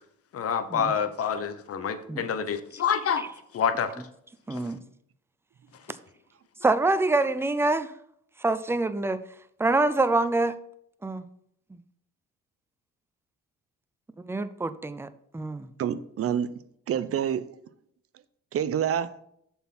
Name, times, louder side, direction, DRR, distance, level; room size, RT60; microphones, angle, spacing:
voice 1, 0.3-3.2 3.5-3.9 4.5-4.6 6.6-6.7, left 7 dB, 50° left, 0.9 m, -27 dB
voice 2, 4.5-4.8 6.6-7.9 8.4-9.2 9.6-10.6 11.0-11.2 14.3-15.7, right 2 dB, 10° right, 0.5 m, -25 dB
voice 3, 15.8-16.5 16.9-17.5 18.5-19.1, right 9 dB, 50° right, 0.6 m, -27 dB
6.9 x 4.5 x 5.8 m
cardioid pair, 90°, 30 cm